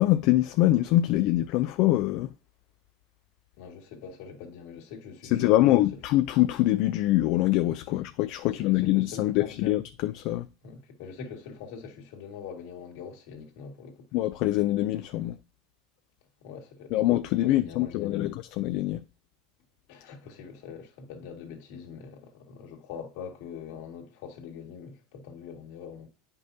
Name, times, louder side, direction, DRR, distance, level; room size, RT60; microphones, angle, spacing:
voice 1, 0.0-2.3 5.3-10.5 14.1-15.4 16.9-18.3 18.6-19.0, left 15 dB, 50° left, 0.4 m, -24 dB
voice 2, 3.6-5.9 7.9-8.0 8.4-9.8 10.6-14.1 16.4-17.0 17.4-18.4 19.9-26.1, left 6 dB, 65° left, 1.9 m, -43 dB
9.2 x 5.3 x 2.7 m
supercardioid pair, 150°, 0 cm